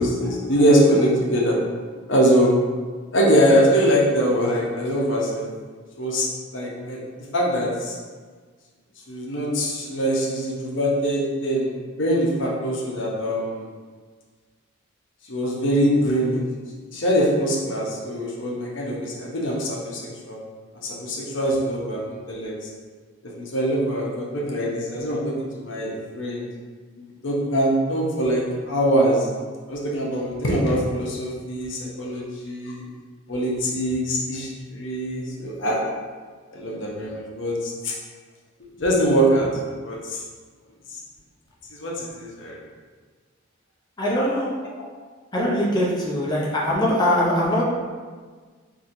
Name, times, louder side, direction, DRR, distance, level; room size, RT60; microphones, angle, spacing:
voice 1, 0.0-1.6 2.1-2.5 3.1-5.5 6.0-6.3 6.5-7.0 7.3-8.0 9.1-11.7 12.0-13.6 15.3-16.4 16.9-20.0 20.3-20.4 20.8-22.5 23.4-26.5 27.0-29.2 29.7-32.8 33.3-35.8 36.5-37.9 38.8-39.5 39.8-40.2 41.8-42.6, equal, 65° left, -3 dB, 0.7 m, -23 dB
voice 2, 44.0-44.5 45.3-47.6, left 1 dB, 20° left, -4 dB, 0.5 m, -22 dB
4.2 x 2.7 x 2.5 m, 1.5 s
head